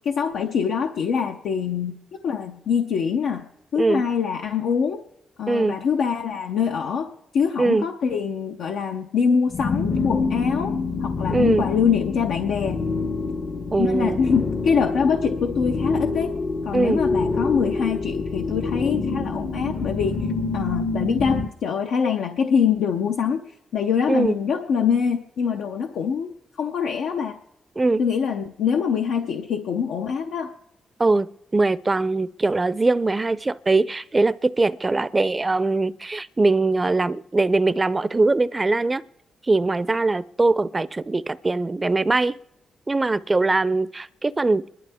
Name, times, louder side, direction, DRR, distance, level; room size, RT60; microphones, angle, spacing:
voice 1, 0.0-2.0 2.2-5.0 5.4-12.8 13.8-16.3 16.6-20.2 20.5-23.4 23.7-27.4 28.0-30.5, left 6 dB, 90° left, 4 dB, 0.6 m, -24 dB
sound 1, 9.5-21.5, left 4 dB, 50° left, 0.7 m, -26 dB
voice 2, 11.3-11.7 13.7-14.2 16.7-17.0 24.1-24.3 27.8-28.0 31.0-31.3 31.5-39.0 39.5-42.4 42.9-44.7, right 3 dB, 25° right, 17 dB, 0.4 m, -21 dB
28.5 x 11.5 x 3.5 m, 0.91 s
cardioid pair, 95°, 0 cm